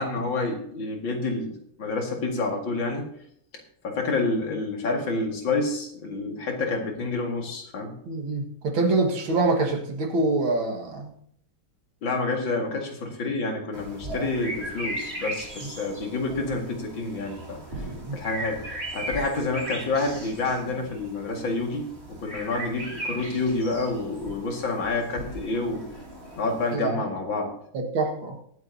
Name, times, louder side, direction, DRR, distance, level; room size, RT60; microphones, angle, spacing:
voice 1, 0.0-1.5 1.8-3.1 3.8-7.9 12.0-17.6 18.1-21.9 22.2-25.8 26.4-27.5, left 3 dB, 65° left, 1 dB, 2.7 m, -28 dB
voice 2, 8.1-11.1 14.0-14.3 15.6-15.7 17.8-18.2 26.7-27.0 27.7-28.4, right 3 dB, 70° right, 2 dB, 2.5 m, -26 dB
sound 1, 13.7-26.8, right 1 dB, 30° right, 2.7 m, -38 dB
23.0 x 7.8 x 2.7 m, 0.69 s
omnidirectional pair, 2.3 m